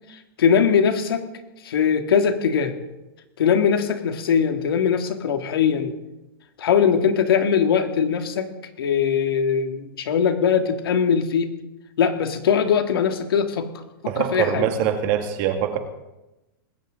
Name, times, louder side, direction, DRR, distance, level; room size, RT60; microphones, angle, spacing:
voice 1, 0.4-1.2 1.6-2.7 3.4-5.9 6.6-8.5 8.8-11.5 12.0-13.7 14.2-14.7, left 7 dB, 85° left, 6 dB, 2.1 m, -21 dB
voice 2, 14.1-15.8, right 9 dB, 35° right, 7 dB, 1.6 m, -23 dB
20.0 x 17.0 x 3.8 m, 1.0 s
supercardioid pair, 170°, 12 cm